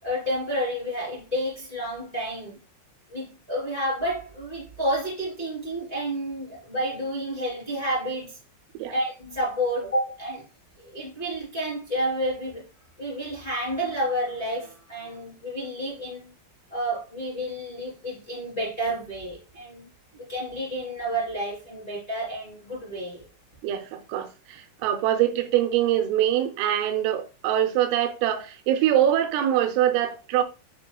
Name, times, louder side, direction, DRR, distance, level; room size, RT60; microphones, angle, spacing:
voice 1, 0.0-2.6 3.1-8.4 8.9-10.4 10.8-12.6 13.0-16.2 16.7-19.9 20.2-23.3, equal, 10° left, 2.2 m, -30 dB
voice 2, 23.6-30.4, right 11 dB, 90° right, 3.3 m, -24 dB
10.5 x 4.1 x 2.2 m
omnidirectional pair, 5.5 m